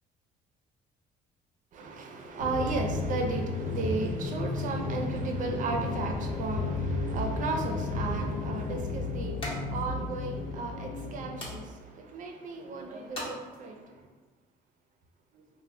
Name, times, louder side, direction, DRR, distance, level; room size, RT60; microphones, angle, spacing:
voice 1, 1.7-13.7, right 3 dB, 50° right, 4 dB, 0.5 m, -35 dB
sound 1, 2.4-11.7, left 3 dB, 90° left, 0.4 m, -33 dB
sound 2, 7.7-14.0, left 1 dB, 30° left, 0.8 m, -46 dB
2.2 x 2.1 x 3.6 m, 1.3 s
cardioid pair, 110°, 17 cm